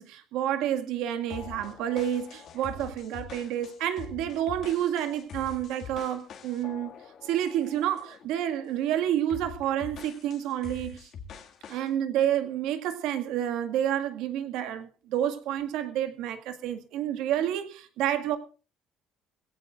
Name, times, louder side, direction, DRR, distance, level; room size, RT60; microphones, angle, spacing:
voice 1, 0.0-6.9 7.2-11.1 11.7-18.4, right 11 dB, 80° right, 2.0 m, -29 dB
sound 1, 1.3-8.3 8.6-8.9 9.3-11.9, left 6 dB, 45° left, 2.1 m, -45 dB
22.0 x 17.0 x 2.5 m
cardioid pair, 160°, 0 cm